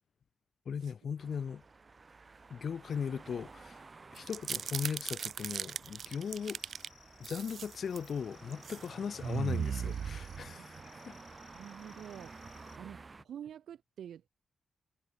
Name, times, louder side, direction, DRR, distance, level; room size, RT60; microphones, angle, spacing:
voice 1, 0.7-1.6 2.5-3.8 4.1-6.6 7.2-11.2, left 7 dB, 55° left, 0.4 m, -38 dB
sound 1, 1.2-13.2, right 4 dB, 30° right, 4.4 m, -53 dB
sound 2, 4.2-6.9 7.2-8.1 8.5-8.8 9.2-10.8, right 7 dB, 60° right, 0.6 m, -37 dB
sound 3, 6.0-12.8, left 9 dB, 80° left, 6.2 m, -62 dB
voice 2, 11.5-12.4 12.8-14.3, right 9 dB, 80° right, 1.2 m, -47 dB
cardioid pair, 105°, 0 cm